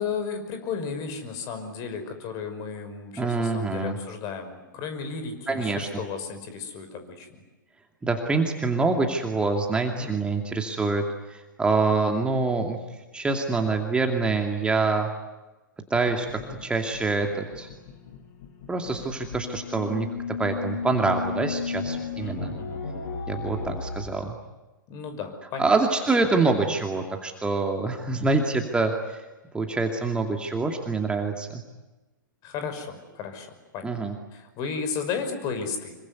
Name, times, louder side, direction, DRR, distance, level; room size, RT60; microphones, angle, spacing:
voice 1, 0.0-7.3 9.9-10.1 22.2-22.8 24.9-25.7 32.4-34.0 34.3-36.0, left 5 dB, 35° left, 8 dB, 5.6 m, -34 dB
voice 2, 3.2-4.0 5.5-6.0 8.0-11.0 11.3-12.8 13.1-15.1 15.9-17.7 18.7-20.1 20.4-22.5 23.3-24.4 25.6-29.2 29.5-31.6 33.8-34.2, right 3 dB, 10° right, 3 dB, 2.5 m, -25 dB
sound 1, 15.9-24.1, left 5 dB, 55° left, 6.3 m, -35 dB
26.5 x 23.5 x 9.6 m, 1.1 s
figure-of-eight pair, 110°, 11 cm